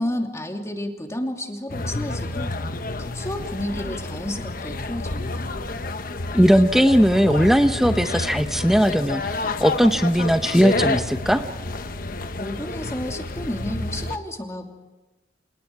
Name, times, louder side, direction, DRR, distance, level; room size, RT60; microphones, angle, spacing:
voice 1, 0.0-2.5 3.0-5.5 12.4-14.8, left 1 dB, 15° left, 3 dB, 2.8 m, -31 dB
sound 1, 1.7-14.2, left 2 dB, 55° left, 1.2 m, -29 dB
voice 2, 6.3-11.4, equal, ahead, 7 dB, 0.8 m, -18 dB
29.5 x 27.5 x 4.8 m, 1.1 s
head